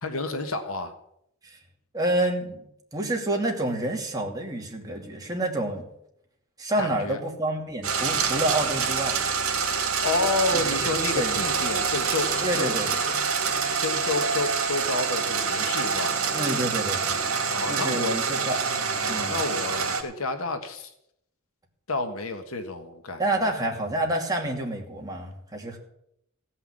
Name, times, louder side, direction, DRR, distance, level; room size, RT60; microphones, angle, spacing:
voice 1, 0.0-0.9 6.8-7.2 10.0-12.7 13.8-16.2 17.5-18.2 19.0-20.9 21.9-23.2, left 3 dB, 70° left, 7 dB, 1.4 m, -30 dB
voice 2, 1.9-2.6 2.9-5.9 6.6-9.2 10.5-11.4 12.4-13.0 16.3-17.4 17.7-19.4 23.2-25.8, right 1 dB, 15° right, 0 dB, 2.6 m, -29 dB
sound 1, 7.8-20.0, right 5 dB, 75° right, 2.3 m, -26 dB
16.0 x 5.8 x 8.6 m, 0.76 s
head